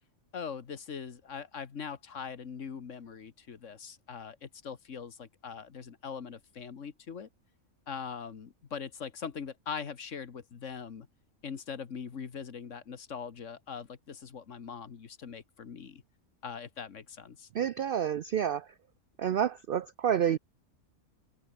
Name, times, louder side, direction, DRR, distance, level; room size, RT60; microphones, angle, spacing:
voice 1, 0.3-7.3 7.9-11.1 11.4-16.0 16.4-17.5, left 6 dB, 60° left, 1.7 m, -41 dB
voice 2, 17.5-18.7 19.2-20.4, right 9 dB, 65° right, 0.5 m, -29 dB
omnidirectional pair, 1.4 m